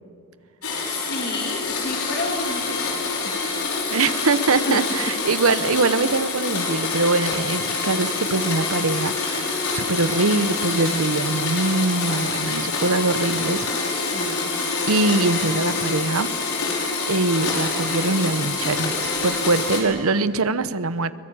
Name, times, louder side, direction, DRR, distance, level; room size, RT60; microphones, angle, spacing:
Domestic sounds home sounds, 0.6-19.8, left 4 dB, 70° left, 5.7 m, -26 dB
voice 1, 0.8-2.9 3.2-3.3 4.7-4.8 13.9-14.5, left 2 dB, 45° left, 1 dB, 2.2 m, -30 dB
voice 2, 3.9-13.7 14.9-16.3 17.1-21.1, right 3 dB, 65° right, 14 dB, 0.9 m, -23 dB
23.0 x 21.5 x 8.8 m, 2.6 s
head